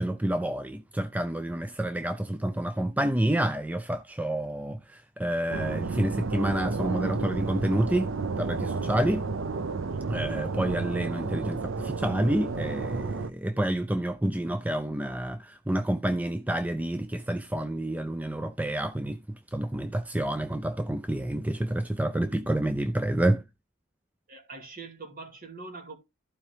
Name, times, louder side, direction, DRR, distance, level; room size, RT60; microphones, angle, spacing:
voice 1, 0.0-8.1 8.4-9.2 10.1-19.2 19.5-23.4, right 1 dB, 5° right, 0.4 m, -28 dB
sound 1, 5.5-13.3, right 4 dB, 65° right, 0.5 m, -32 dB
voice 2, 24.3-26.0, right 3 dB, 45° right, 2.5 m, -43 dB
14.5 x 4.8 x 3.4 m
head